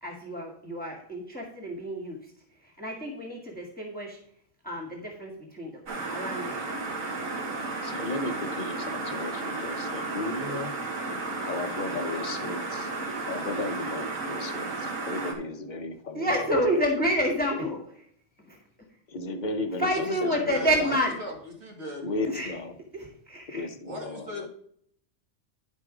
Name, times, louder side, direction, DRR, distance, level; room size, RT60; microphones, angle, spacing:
voice 1, 0.0-2.2 2.8-4.2 4.6-5.7 6.1-6.6 16.1-18.0 18.5-18.6 19.8-21.1 22.3-22.5 23.3-23.7, equal, 5° left, 0 dB, 1.5 m, -29 dB
sound 1, 5.9-15.3, right 3 dB, 90° right, 1.9 m, -33 dB
voice 2, 7.8-10.7 11.4-12.9 13.2-16.8 19.1-19.9 20.2-20.9 22.0-22.8 23.5-24.5, left 2 dB, 40° left, 6 dB, 0.9 m, -35 dB
voice 3, 20.0-21.3 21.6-22.0 23.9-24.5, left 1 dB, 60° right, 0 dB, 2.4 m, -37 dB
10.5 x 4.5 x 4.9 m, 0.65 s
omnidirectional pair, 1.4 m